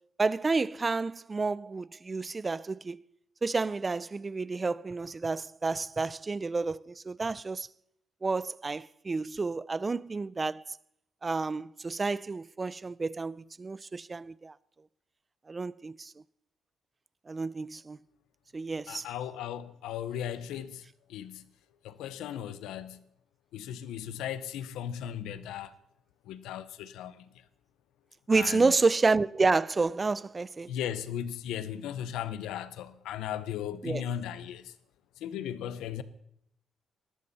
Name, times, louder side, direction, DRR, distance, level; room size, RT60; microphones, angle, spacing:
voice 1, 0.2-3.0 3.4-7.7 8.2-10.8 11.2-14.5 15.5-16.1 17.3-18.0 18.5-19.1 28.3-30.7 33.8-34.1, right 3 dB, 25° right, 0.5 m, -30 dB
voice 2, 18.9-20.8 21.1-21.4 21.8-23.0 23.5-25.7 26.3-27.2 28.3-28.7 30.7-34.7 35.2-36.0, left 10 dB, 90° left, 0.8 m, -37 dB
19.5 x 13.0 x 4.2 m
cardioid pair, 90°, 0 cm